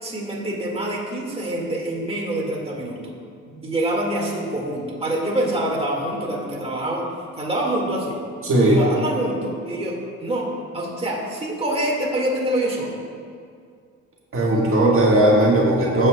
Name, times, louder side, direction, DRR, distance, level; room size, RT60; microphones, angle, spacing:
voice 1, 0.0-3.1 3.6-7.1 7.4-8.2 8.6-13.0, right 1 dB, 20° right, -3 dB, 2.0 m, -26 dB
voice 2, 8.4-8.8 14.3-16.1, right 1 dB, 45° right, -4 dB, 1.7 m, -17 dB
16.0 x 7.8 x 2.3 m, 2.2 s
cardioid pair, 90°, 30 cm